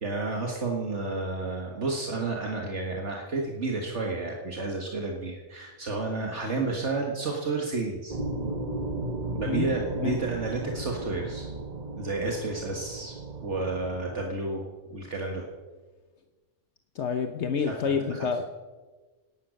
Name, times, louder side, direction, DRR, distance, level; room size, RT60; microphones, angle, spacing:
voice 1, 0.0-8.2 9.3-11.5 12.0-13.2 13.4-15.5 17.7-18.3, right 3 dB, 65° right, 1 dB, 1.9 m, -31 dB
sound 1, 8.1-14.3, right 2 dB, 35° right, 1.3 m, -35 dB
voice 2, 9.4-10.2 16.9-18.4, left 6 dB, 65° left, 8 dB, 1.1 m, -29 dB
17.0 x 11.5 x 6.4 m, 1.3 s
omnidirectional pair, 1.3 m